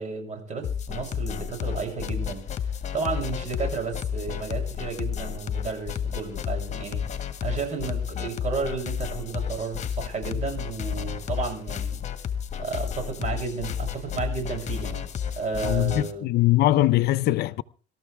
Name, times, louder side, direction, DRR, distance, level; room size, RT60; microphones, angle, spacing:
voice 1, 0.0-7.1 7.4-12.0 12.6-15.0 15.4-16.3, right 4 dB, 45° right, 7.3 m, -32 dB
sound 1, 0.6-16.1, left 8 dB, 45° left, 1.6 m, -32 dB
voice 2, 15.6-17.6, left 15 dB, 75° left, 0.7 m, -22 dB
25.5 x 13.5 x 3.5 m
cardioid pair, 110°, 17 cm